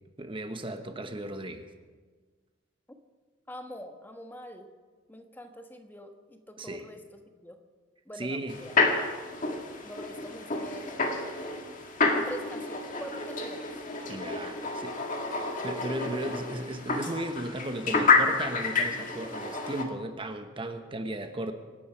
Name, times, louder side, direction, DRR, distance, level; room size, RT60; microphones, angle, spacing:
voice 1, 0.2-1.7 6.6-6.8 8.2-8.6 14.1-15.1 15.4-21.5, right 1 dB, 25° right, 7 dB, 1.1 m, -35 dB
voice 2, 3.5-4.7 5.1-7.0 7.4-7.6 8.0-8.8 9.8-10.9 12.2-13.7 14.6-14.7, equal, 10° left, 5 dB, 1.3 m, -44 dB
sound 1, 8.5-19.8, left 3 dB, 40° left, 1.7 m, -29 dB
25.5 x 9.4 x 5.8 m, 1.5 s
head